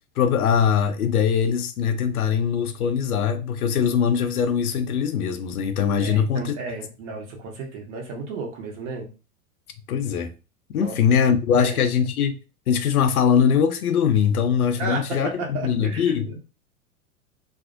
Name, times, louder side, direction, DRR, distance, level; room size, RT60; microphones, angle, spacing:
voice 1, 0.2-6.5 9.9-10.3 10.7-12.4 12.7-16.3, left 7 dB, 80° left, 0.5 m, -21 dB
voice 2, 6.0-9.1 10.8-11.3 11.6-11.8 14.8-16.4, right 3 dB, 55° right, 1.0 m, -33 dB
2.5 x 2.0 x 2.5 m
figure-of-eight pair, 90°, 43 cm